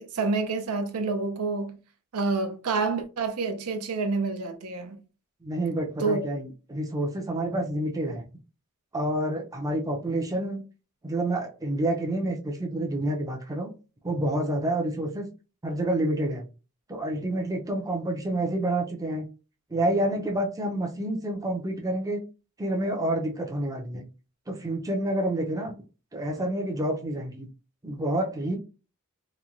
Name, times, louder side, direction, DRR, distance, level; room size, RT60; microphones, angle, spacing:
voice 1, 0.0-1.8 2.1-5.0 6.0-6.2, right 4 dB, 85° right, 0.5 m, -28 dB
voice 2, 5.4-8.2 8.9-10.6 11.0-13.7 14.0-15.3 15.6-16.5 16.9-19.3 19.7-22.2 22.6-24.0 24.5-25.7 26.1-27.5 27.8-28.6, right 1 dB, 15° right, 0.5 m, -28 dB
3.0 x 2.2 x 2.4 m
head